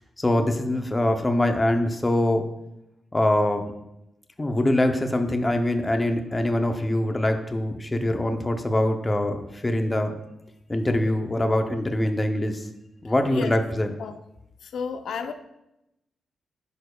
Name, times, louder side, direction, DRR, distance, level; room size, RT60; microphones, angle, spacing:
voice 1, 0.2-2.4 3.1-3.7 4.4-10.2 10.7-12.6 13.0-13.9, left 1 dB, 15° left, 0.6 m, -23 dB
voice 2, 14.6-15.3, left 6 dB, 65° left, 0.6 m, -31 dB
10.5 x 7.0 x 2.3 m
wide cardioid pair, 175°, 0 cm